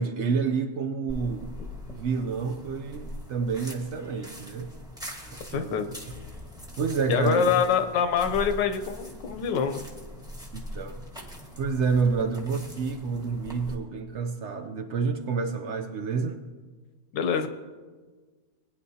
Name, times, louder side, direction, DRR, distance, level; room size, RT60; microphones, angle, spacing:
voice 1, 0.0-1.5 1.9-4.7 5.3-5.8 6.8-7.5 10.5-11.0 11.6-16.4, right 5 dB, 70° right, 7 dB, 0.6 m, -28 dB
sound 1, 1.1-13.7, equal, 5° right, 1.1 m, -42 dB
voice 2, 5.5-5.9 7.1-9.8 17.1-17.5, left 7 dB, 80° left, 7 dB, 1.4 m, -25 dB
20.5 x 9.7 x 2.8 m, 1.4 s
omnidirectional pair, 1.9 m